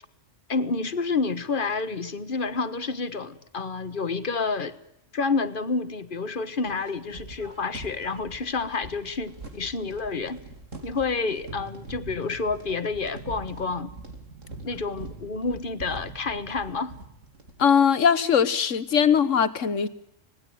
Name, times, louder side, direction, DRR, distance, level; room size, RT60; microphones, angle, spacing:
voice 1, 0.5-4.8 5.1-10.4 10.8-13.9 14.6-16.9, left 4 dB, 45° left, 12 dB, 1.5 m, -29 dB
sound 1, 6.7-17.6, right 3 dB, 90° right, 3.5 m, -43 dB
voice 2, 17.6-19.9, left 7 dB, 80° left, 14 dB, 1.6 m, -20 dB
26.0 x 19.0 x 9.3 m, 0.82 s
omnidirectional pair, 1.3 m